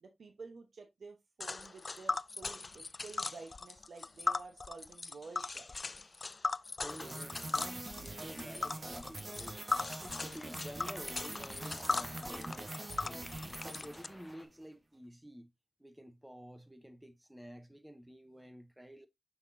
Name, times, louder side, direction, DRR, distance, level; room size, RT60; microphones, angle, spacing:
voice 1, 0.0-6.0, right 4 dB, 85° right, 1.0 m, -51 dB
Tick, 1.4-14.1, left 3 dB, 45° left, 0.3 m, -38 dB
voice 2, 6.8-9.6 10.0-15.5 15.8-19.1, equal, 5° right, 0.9 m, -51 dB
sound 1, 6.9-14.5, right 2 dB, 35° right, 1.4 m, -44 dB
sound 2, 9.3-14.5, left 2 dB, 20° left, 1.3 m, -57 dB
5.9 x 5.9 x 2.7 m
wide cardioid pair, 105°, 0 cm